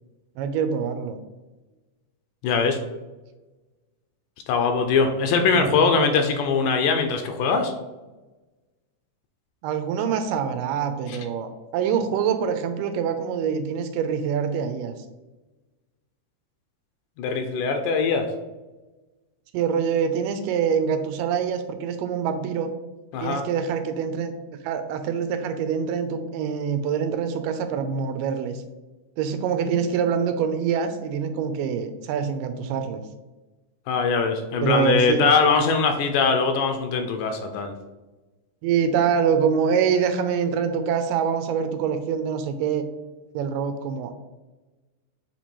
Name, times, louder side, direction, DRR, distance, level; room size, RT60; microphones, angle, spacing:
voice 1, 0.4-1.2 5.6-6.0 9.6-14.9 19.5-22.7 23.2-24.3 24.6-28.5 29.2-33.0 34.6-35.3 38.6-42.9 43.3-44.1, right 7 dB, 85° right, 8 dB, 2.2 m, -25 dB
voice 2, 2.4-2.8 4.5-7.7 11.1-11.2 17.2-18.3 23.1-23.4 33.9-37.7, left 5 dB, 80° left, 6 dB, 2.0 m, -22 dB
7.4 x 3.0 x 4.3 m, 1.1 s
omnidirectional pair, 3.8 m